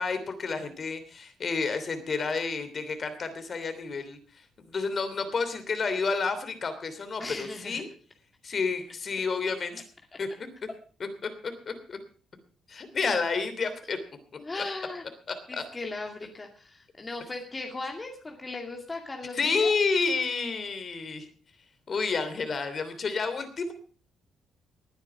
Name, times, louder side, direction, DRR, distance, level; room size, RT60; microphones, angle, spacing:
voice 1, 0.0-4.2 4.7-7.9 8.4-9.8 10.2-10.3 11.2-12.0 12.7-14.0 15.3-15.6 19.3-21.3 21.9-23.7, left 4 dB, 40° left, 10 dB, 3.1 m, -30 dB
voice 2, 7.2-7.8 14.4-15.0 15.5-19.7, left 3 dB, 20° left, 2 dB, 2.4 m, -37 dB
20.0 x 9.6 x 4.9 m, 0.41 s
cardioid pair, 120°, 0 cm